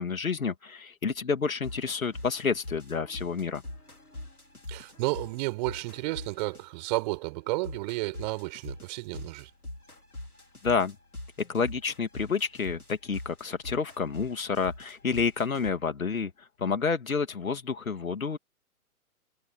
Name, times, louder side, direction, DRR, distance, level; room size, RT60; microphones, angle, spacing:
voice 1, 0.0-3.6 10.6-10.9 11.5-18.4, left 5 dB, 70° left, 3.0 m, -29 dB
sound 1, 1.6-6.9 7.6-15.7, left 1 dB, 85° left, 3.1 m, -43 dB
voice 2, 4.7-9.5, right 22 dB, 30° right, 5.7 m, -32 dB
figure-of-eight pair, 125°, 43 cm